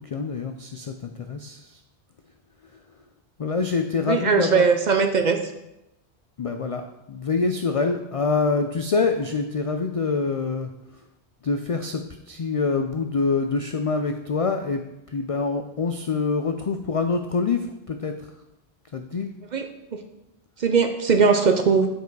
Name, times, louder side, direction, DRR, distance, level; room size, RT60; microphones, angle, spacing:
voice 1, 0.0-1.8 3.4-4.6 6.4-10.7 11.4-12.0 12.3-14.8 15.1-17.6 17.9-18.1 18.9-19.3, left 4 dB, 60° left, 6 dB, 0.3 m, -25 dB
voice 2, 4.0-5.5 19.5-20.0 20.6-21.9, right 5 dB, 50° right, 6 dB, 0.6 m, -20 dB
8.0 x 4.7 x 4.7 m, 0.92 s
omnidirectional pair, 1.1 m